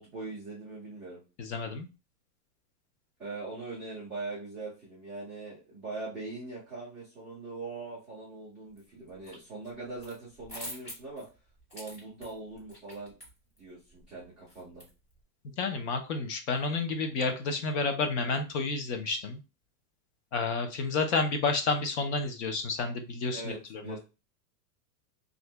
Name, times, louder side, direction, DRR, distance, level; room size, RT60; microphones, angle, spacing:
voice 1, 0.0-1.2 3.2-11.2 11.7-13.1 13.6-14.8 23.3-24.0, right 3 dB, ahead, -15 dB, 0.3 m, -41 dB
voice 2, 1.4-1.9 15.6-19.4 20.3-23.9, left 4 dB, 45° left, 6 dB, 0.6 m, -30 dB
sound 1, 8.8-9.4 9.6-15.2, equal, 15° left, 0.9 m, -47 dB
2.9 x 2.6 x 3.2 m, 0.30 s
supercardioid pair, 160°, 49 cm